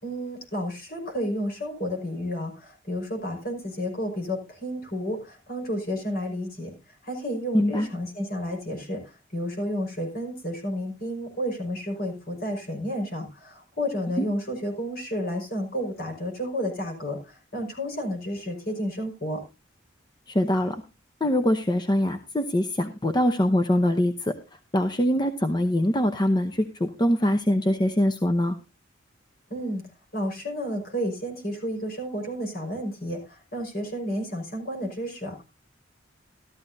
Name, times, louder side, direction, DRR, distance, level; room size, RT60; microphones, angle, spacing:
voice 1, 0.0-6.7 7.0-19.4 29.5-29.8 30.1-35.4, equal, 50° left, 2 dB, 5.3 m, -31 dB
voice 2, 7.5-7.9 14.2-14.3 20.3-20.8 21.2-24.3 24.7-28.6, left 1 dB, 20° left, 7 dB, 0.8 m, -23 dB
14.0 x 13.0 x 2.7 m, 0.28 s
head